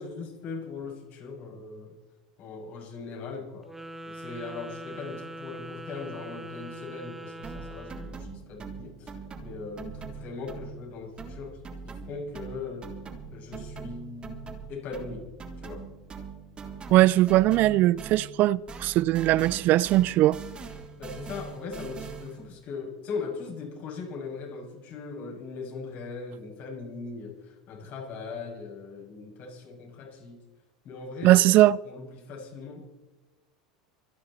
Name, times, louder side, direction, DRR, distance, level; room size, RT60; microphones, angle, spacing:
voice 1, 0.0-2.0 2.4-3.7 4.1-12.9 13.3-15.3 15.6-15.9 21.0-30.4 30.8-31.5 31.8-32.9, left 4 dB, 50° left, 6.9 m, -39 dB
Wind instrument woodwind instrument, 3.6-8.2, right 1 dB, 5° right, 2.1 m, -42 dB
sound 1, 7.4-10.9 11.2-18.4 18.7-22.5, right 5 dB, 25° right, 3.4 m, -42 dB
voice 2, 16.9-20.4 31.2-31.8, right 16 dB, 50° right, 0.4 m, -20 dB
26.0 x 10.5 x 4.3 m
hypercardioid pair, 85°, 4 cm